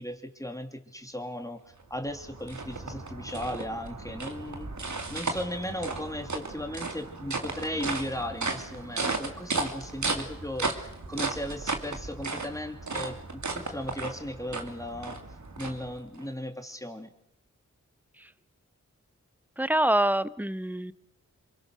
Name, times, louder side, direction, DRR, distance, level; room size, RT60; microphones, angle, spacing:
voice 1, 0.0-1.6 1.9-4.7 5.1-15.2 15.6-17.1, left 1 dB, 10° left, 6 dB, 2.6 m, -36 dB
sound 1, 1.8-16.3, right 3 dB, 70° right, 2.9 m, -35 dB
voice 2, 19.6-20.9, right 1 dB, 5° right, 16 dB, 1.0 m, -26 dB
27.0 x 23.0 x 6.3 m, 0.82 s
cardioid pair, 45°, 30 cm